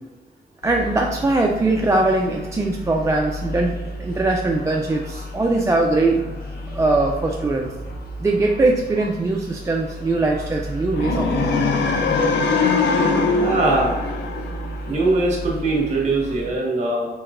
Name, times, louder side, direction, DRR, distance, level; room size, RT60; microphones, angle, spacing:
sound 1, 0.6-16.5, equal, 60° left, 0.9 m, -33 dB
voice 1, 0.6-6.2 6.7-7.7 8.2-11.7, right 2 dB, 15° right, 0 dB, 0.3 m, -21 dB
sound 2, 10.9-15.0, left 4 dB, 85° left, 0.6 m, -21 dB
voice 2, 13.4-14.0 14.9-17.1, right 2 dB, 40° right, -2 dB, 1.3 m, -21 dB
4.7 x 4.2 x 2.5 m, 1.2 s
wide cardioid pair, 135°, 18 cm